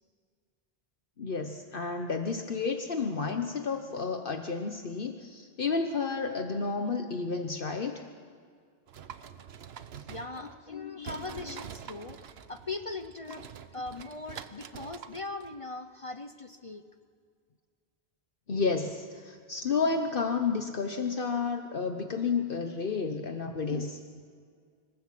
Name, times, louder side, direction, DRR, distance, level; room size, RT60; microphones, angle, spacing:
voice 1, 1.2-8.0 10.7-11.5 18.5-24.2, left 4 dB, 60° left, 6 dB, 1.2 m, -31 dB
sound 1, 8.9-10.8 11.0-15.6, right 8 dB, 75° right, 1.1 m, -46 dB
voice 2, 10.1-13.5 13.7-16.8, left 3 dB, 35° left, 9 dB, 0.7 m, -40 dB
26.5 x 15.5 x 7.6 m, 2.1 s
omnidirectional pair, 1.1 m